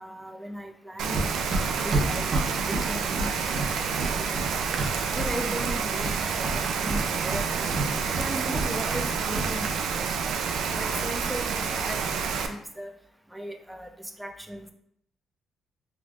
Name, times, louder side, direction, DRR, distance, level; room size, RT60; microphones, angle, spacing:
voice 1, 0.0-1.4 1.8-3.7 4.0-4.3 5.1-7.7 8.2-10.1 10.7-12.9 13.3-14.7, right 1 dB, 5° right, 5 dB, 0.4 m, -37 dB
Rain, 1.0-12.5, right 6 dB, 80° right, 0.3 m, -29 dB
Run, 1.1-5.3 5.6-6.2 6.4-9.1 9.3-9.5, right 2 dB, 50° right, 0.8 m, -29 dB
3.5 x 3.2 x 2.4 m, 0.69 s
cardioid pair, 90°, 0 cm